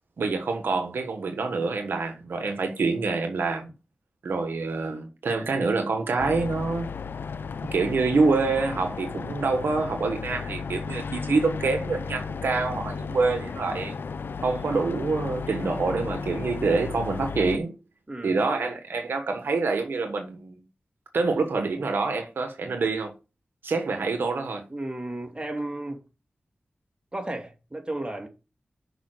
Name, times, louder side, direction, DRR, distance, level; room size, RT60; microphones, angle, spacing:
voice 1, 0.2-3.7 4.2-6.9 7.7-14.0 14.4-17.7 18.2-20.6 21.1-23.1 23.6-24.6, right 4 dB, 90° right, 1.2 m, -26 dB
sound 1, 6.2-17.6, left 5 dB, 80° left, 0.5 m, -34 dB
voice 2, 18.1-18.4 24.7-26.0 27.1-28.3, right 1 dB, 25° right, 2.7 m, -33 dB
6.3 x 5.0 x 6.4 m
cardioid pair, 45°, 4 cm